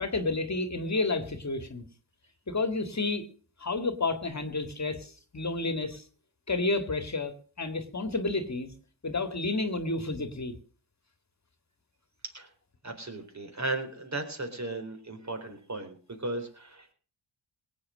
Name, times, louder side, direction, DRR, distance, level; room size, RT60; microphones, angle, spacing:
voice 1, 0.0-1.9 2.5-3.3 3.6-6.1 6.5-8.7 9.0-10.5, left 3 dB, 35° left, 10 dB, 2.0 m, -30 dB
voice 2, 12.8-16.9, right 2 dB, 35° right, 5 dB, 4.0 m, -36 dB
17.5 x 8.5 x 6.4 m, 0.41 s
cardioid pair, 55°, 46 cm